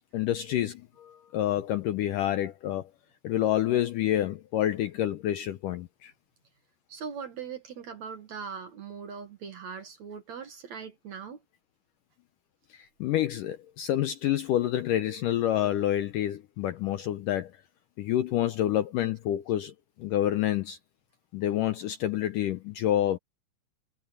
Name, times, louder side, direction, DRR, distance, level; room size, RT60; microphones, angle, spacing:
voice 1, 0.1-2.9 3.2-6.1 12.7-17.5 18.0-19.7 20.0-20.8 21.3-23.2, left 12 dB, 75° left, 2.0 m, -28 dB
voice 2, 6.9-11.4, right 6 dB, 55° right, 2.4 m, -40 dB
omnidirectional pair, 4.6 m